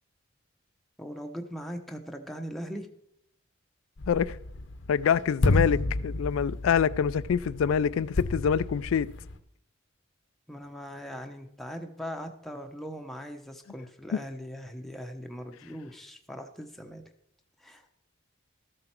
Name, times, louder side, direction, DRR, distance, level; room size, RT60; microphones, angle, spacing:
voice 1, 1.0-2.9 10.5-17.0 17.6-17.8, equal, ahead, 3 dB, 0.8 m, -40 dB
sound 1, 4.0-9.3, left 2 dB, 60° left, 0.7 m, -31 dB
voice 2, 4.1-4.4 4.9-9.1 14.1-14.2, left 7 dB, 90° left, 16 dB, 0.3 m, -25 dB
13.5 x 7.7 x 4.5 m, 0.74 s
head